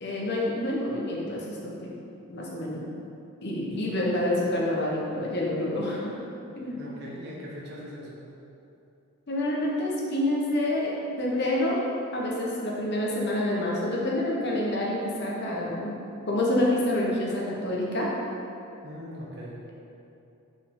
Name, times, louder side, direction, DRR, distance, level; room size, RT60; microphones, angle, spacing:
voice 1, 0.0-2.0 2.3-2.8 3.4-6.1 6.5-6.8 9.3-10.9 11.2-11.8 12.1-16.0 16.3-18.1, left 1 dB, 50° left, -4 dB, 1.1 m, -27 dB
voice 2, 6.7-8.3 18.8-19.6, equal, 50° right, -5 dB, 1.3 m, -41 dB
6.7 x 4.9 x 3.8 m, 2.7 s
head